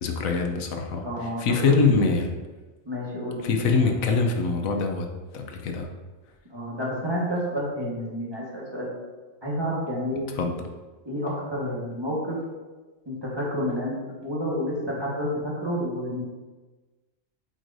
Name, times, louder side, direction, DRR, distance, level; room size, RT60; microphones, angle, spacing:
voice 1, 0.0-2.3 3.4-5.1 5.3-5.9 10.4-10.5, left 4 dB, 90° left, 3 dB, 1.2 m, -24 dB
voice 2, 1.0-1.9 2.8-3.9 6.5-8.9 9.4-10.2 11.0-12.4 13.1-14.0 14.2-16.2, equal, 20° right, -6 dB, 1.4 m, -29 dB
8.3 x 4.7 x 2.6 m, 1.3 s
omnidirectional pair, 1.4 m